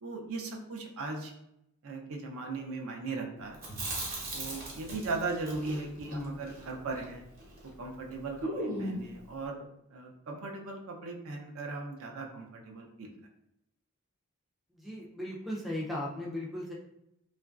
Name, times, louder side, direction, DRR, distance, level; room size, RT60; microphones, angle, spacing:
voice 1, 0.0-1.3 1.8-3.6 4.3-7.2 7.6-13.1, right 3 dB, 65° right, 2 dB, 0.5 m, -38 dB
Chewing mastication, 3.5-7.7 8.0-8.1 8.4-9.1, right 1 dB, 40° right, 0.9 m, -38 dB
voice 2, 6.1-6.4 14.7-16.7, left 1 dB, ahead, -3 dB, 0.3 m, -37 dB
2.9 x 2.4 x 2.3 m, 0.82 s
head